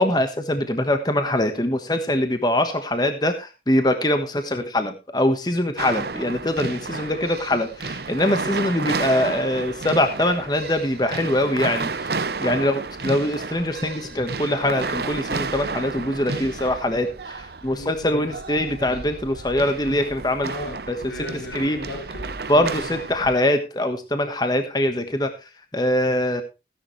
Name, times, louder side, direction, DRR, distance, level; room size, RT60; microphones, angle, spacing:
voice 1, 0.0-7.7 8.1-12.1 12.4-17.1 17.6-20.5 21.5-21.8 22.5-25.3 25.7-26.4, left 1 dB, 25° left, 1.3 m, -23 dB
voice 2, 5.5-5.9 6.7-7.6 8.6-8.7 12.5-12.7 17.7-18.4 20.4-23.0 26.0-26.2, equal, 90° left, 4.8 m, -38 dB
Flamenco classes, 5.8-23.3, right 4 dB, 65° right, 0.9 m, -32 dB
15.5 x 11.0 x 3.2 m
head